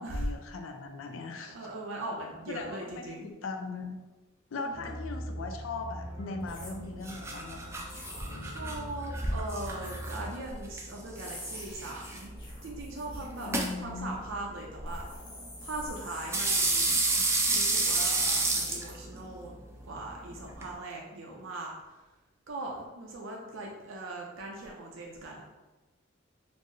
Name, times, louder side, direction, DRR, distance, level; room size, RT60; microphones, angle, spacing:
voice 1, 0.0-1.6 2.5-4.0 4.5-7.7 13.4-14.2, left 3 dB, 80° left, 4 dB, 0.4 m, -39 dB
voice 2, 1.4-3.3 4.5-5.0 8.4-12.3 12.6-13.5 13.8-15.2 15.6-17.0 17.4-19.5 19.8-22.0 22.5-25.4, right 2 dB, 70° right, -1 dB, 0.5 m, -40 dB
sound 1, 4.7-10.3, equal, 55° left, 1.3 m, -41 dB
sound 2, 6.4-6.8 7.9-8.5 9.7-10.2 11.1-13.6 14.9-17.1, left 1 dB, 25° left, 0.9 m, -47 dB
sound 3, 6.5-20.7, right 2 dB, 15° right, 0.3 m, -32 dB
4.3 x 2.0 x 3.1 m, 1.1 s
head